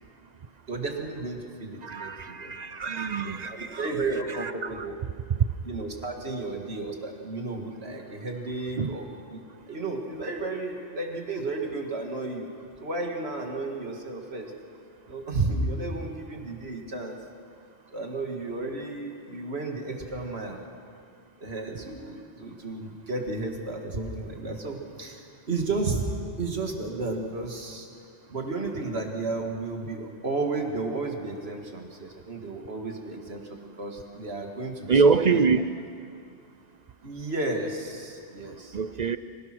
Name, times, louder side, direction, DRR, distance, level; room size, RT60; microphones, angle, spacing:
voice 1, 0.7-2.6 3.1-5.0 5.6-12.5 12.8-14.5 15.1-17.2 17.9-20.6 21.4-26.1 26.4-27.9 28.3-35.5 37.0-38.8, right 3 dB, 60° right, 2 dB, 2.4 m, -33 dB
voice 2, 1.8-3.9 4.3-4.8 5.3-5.4 8.8-9.0 34.9-35.7 38.7-39.2, right 5 dB, 45° right, 12 dB, 0.6 m, -25 dB
25.0 x 17.0 x 6.1 m, 2.3 s
omnidirectional pair, 1.2 m